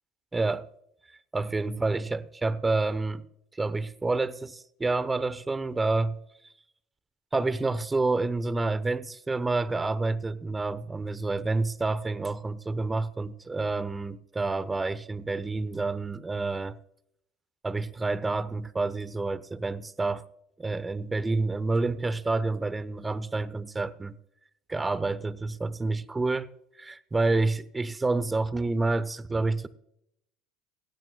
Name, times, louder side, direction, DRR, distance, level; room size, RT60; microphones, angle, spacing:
voice 1, 0.3-0.7 1.3-3.2 3.6-6.2 7.3-16.8 17.6-20.2 20.6-24.2 24.7-26.5 26.8-29.7, right 3 dB, 15° right, 0.8 m, -28 dB
16.5 x 15.5 x 2.2 m
hypercardioid pair, 70°, 0 cm